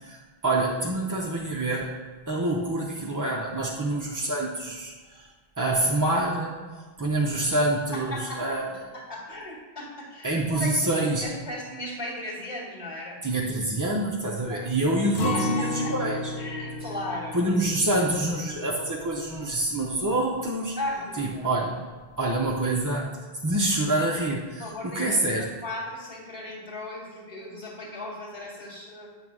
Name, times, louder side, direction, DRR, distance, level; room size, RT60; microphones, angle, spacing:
voice 1, 0.0-1.9 2.3-5.3 5.6-6.6 7.0-8.7 10.2-11.2 13.2-16.3 17.3-20.8 21.2-21.9 22.2-23.2 23.4-25.5, right 2 dB, 20° right, -3 dB, 0.6 m, -26 dB
voice 2, 7.9-8.6 8.9-10.7 11.0-13.2 14.5-14.6 15.3-15.9 16.4-17.4 20.8-21.5 24.6-29.1, left 1 dB, 35° left, -3 dB, 2.2 m, -36 dB
Acoustic guitar, 15.1-21.0 21.4-21.5 22.0-22.5, left 2 dB, 75° left, 1.1 m, -34 dB
8.8 x 3.2 x 6.1 m, 1.4 s
omnidirectional pair, 1.1 m